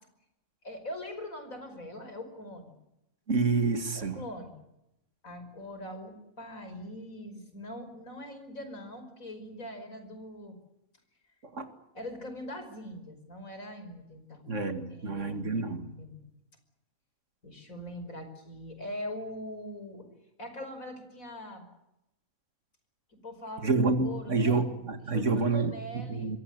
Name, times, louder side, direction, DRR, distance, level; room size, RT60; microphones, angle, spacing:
voice 1, 0.6-2.7 3.9-4.6 5.2-10.5 11.9-14.4 14.9-16.2 17.4-20.1 20.4-21.7 23.2-24.6 25.0-26.3, left 1 dB, 70° left, 5.7 m, -42 dB
voice 2, 3.3-4.3 11.4-11.7 14.5-15.9 23.6-26.4, right 3 dB, 60° right, 2.4 m, -28 dB
26.5 x 22.0 x 8.0 m
omnidirectional pair, 1.5 m